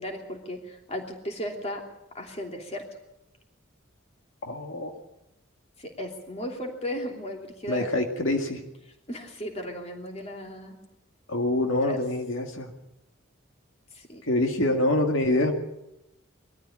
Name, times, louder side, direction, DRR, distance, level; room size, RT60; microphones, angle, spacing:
voice 1, 0.0-1.8 2.1-2.9 5.8-7.9 9.1-10.8 11.7-12.0 13.9-14.2, equal, 30° left, 2 dB, 2.9 m, -36 dB
voice 2, 4.5-4.9 7.7-8.6 11.3-12.7 14.3-15.5, left 1 dB, 75° left, 3 dB, 2.1 m, -25 dB
21.5 x 14.0 x 8.8 m, 0.89 s
head